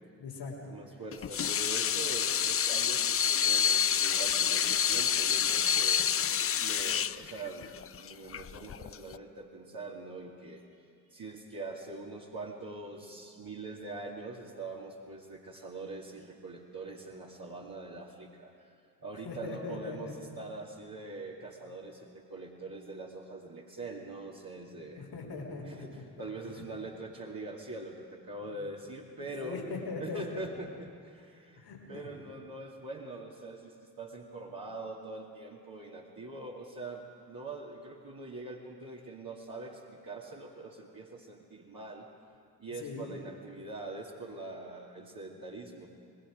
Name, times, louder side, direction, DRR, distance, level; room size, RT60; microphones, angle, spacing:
voice 1, 0.2-0.7 19.1-20.1 25.0-25.8 28.4-28.6 29.2-30.5 31.6-32.1 42.8-43.2, left 4 dB, 90° left, -8 dB, 3.7 m, -40 dB
voice 2, 0.7-6.0 6.6-10.6 11.1-18.7 19.0-25.0 25.7-29.6 30.0-42.1 42.6-45.9, right 2 dB, 50° right, -5 dB, 2.5 m, -43 dB
Water tap faucet / Sink (filling or washing), 1.1-9.2, left 8 dB, 30° left, 0.5 m, -28 dB
27.0 x 20.0 x 5.1 m, 2.4 s
hypercardioid pair, 45°, 46 cm